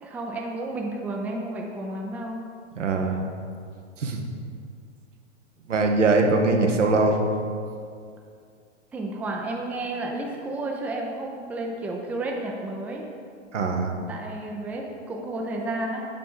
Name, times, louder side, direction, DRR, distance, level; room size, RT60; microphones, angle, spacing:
voice 1, 0.0-2.5 8.9-13.1 14.1-16.1, right 2 dB, 5° right, 0 dB, 0.3 m, -32 dB
voice 2, 2.8-3.2 4.0-4.2 5.7-7.3 13.5-13.9, right 3 dB, 90° right, 3 dB, 0.9 m, -22 dB
6.9 x 4.9 x 3.8 m, 2.3 s
hypercardioid pair, 105°, 36 cm